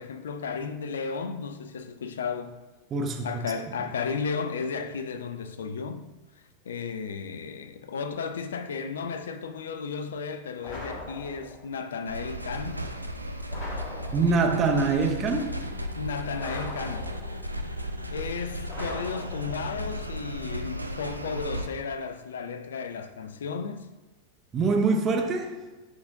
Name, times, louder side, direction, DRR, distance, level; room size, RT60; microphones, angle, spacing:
voice 1, 0.0-2.6 3.2-6.1 6.7-12.9 15.9-17.1 18.1-23.9, left 5 dB, 65° left, 0.4 m, -34 dB
voice 2, 2.9-3.3 14.1-15.6 24.5-25.7, right 4 dB, 25° right, 0.8 m, -24 dB
sound 1, 10.6-11.7 13.5-14.6 16.4-17.5 18.7-19.8, left 2 dB, 35° left, 1.6 m, -40 dB
sound 2, 12.1-21.7, equal, 85° right, 0.4 m, -35 dB
9.8 x 3.8 x 2.5 m
figure-of-eight pair, 90°, 0 cm